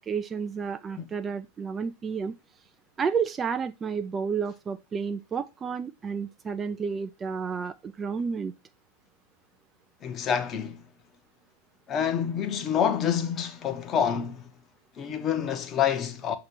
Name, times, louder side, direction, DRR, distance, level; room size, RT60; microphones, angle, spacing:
voice 1, 0.1-2.3 3.0-8.5, right 6 dB, 20° right, 0.3 m, -31 dB
voice 2, 10.0-10.8 11.9-14.5 15.0-16.4, left 8 dB, 30° left, 0.8 m, -27 dB
6.5 x 2.9 x 5.6 m
figure-of-eight pair, 90°, 0 cm